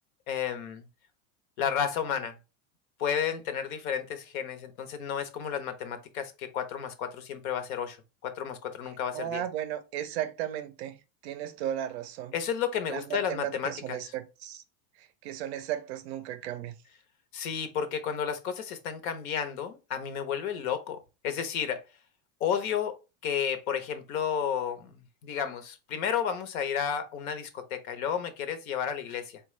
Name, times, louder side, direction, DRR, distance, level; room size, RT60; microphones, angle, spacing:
voice 1, 0.3-0.8 1.6-2.3 3.0-8.0 8.2-9.4 12.3-14.0 17.3-21.0 21.2-21.8 22.4-23.0 23.2-29.4, left 8 dB, 75° left, 0.9 m, -32 dB
voice 2, 9.1-12.3 12.9-14.6 15.0-16.8, right 11 dB, 50° right, 0.4 m, -35 dB
4.3 x 2.3 x 3.0 m
supercardioid pair, 170°, 43 cm